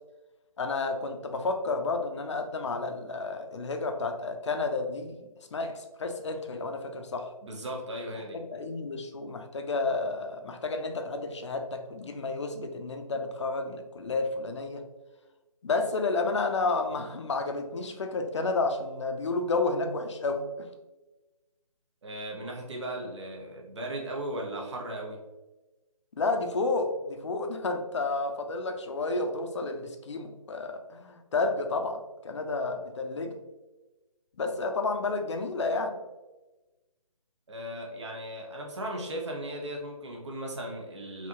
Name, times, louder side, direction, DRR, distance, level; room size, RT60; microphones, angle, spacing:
voice 1, 0.6-7.3 8.3-14.8 15.6-20.7 26.2-33.4 34.4-36.0, left 3 dB, 50° left, 5 dB, 0.6 m, -31 dB
voice 2, 7.4-8.4 22.0-25.2 37.5-41.3, right 1 dB, 50° right, 0 dB, 1.0 m, -37 dB
4.8 x 2.9 x 2.8 m, 1.1 s
figure-of-eight pair, 160°, 19 cm